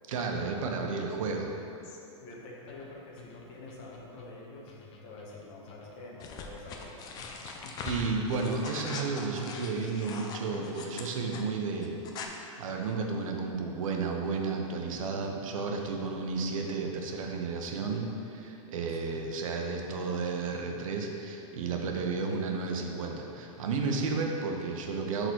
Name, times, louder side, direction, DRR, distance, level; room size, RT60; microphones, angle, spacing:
voice 1, 0.1-1.5 7.5-12.0 12.6-25.3, right 4 dB, 75° right, 2 dB, 0.9 m, -32 dB
voice 2, 1.8-7.0 7.6-7.8 18.9-19.2, left 2 dB, 45° left, -2 dB, 1.2 m, -47 dB
sound 1, 2.7-10.6, left 5 dB, 60° left, 0.8 m, -53 dB
sound 2, 6.2-11.4 11.8-12.3, left 4 dB, 25° left, 0.4 m, -41 dB
6.3 x 3.9 x 4.5 m, 2.8 s
supercardioid pair, 145°, 17 cm